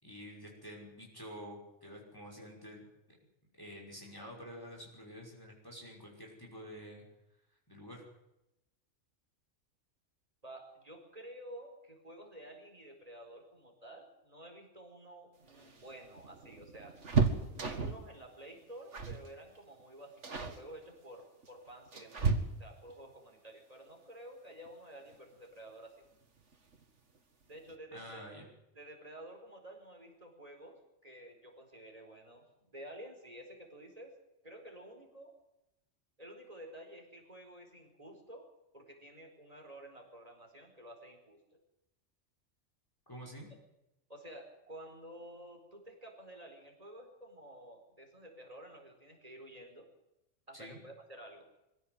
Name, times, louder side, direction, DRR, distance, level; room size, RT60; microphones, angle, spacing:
voice 1, 0.0-2.9 3.6-7.0 7.7-8.0 27.9-28.5 43.1-43.5 50.5-50.8, equal, 15° left, -1 dB, 5.7 m, -48 dB
voice 2, 10.4-17.0 17.6-22.3 22.6-25.9 27.4-28.3 28.7-34.1 34.4-35.3 36.2-38.5 38.7-41.6 44.1-49.9 50.5-51.5, right 1 dB, 30° right, 2 dB, 4.7 m, -51 dB
sound 1, 15.4-18.1 18.9-19.3 19.6-19.8 20.2-20.6 21.4-22.9 24.7-24.8 25.1-25.2 26.4-26.8 27.2-27.3 27.6-27.8, right 4 dB, 65° right, 2.3 m, -33 dB
24.0 x 16.0 x 7.9 m, 0.90 s
omnidirectional pair, 1.3 m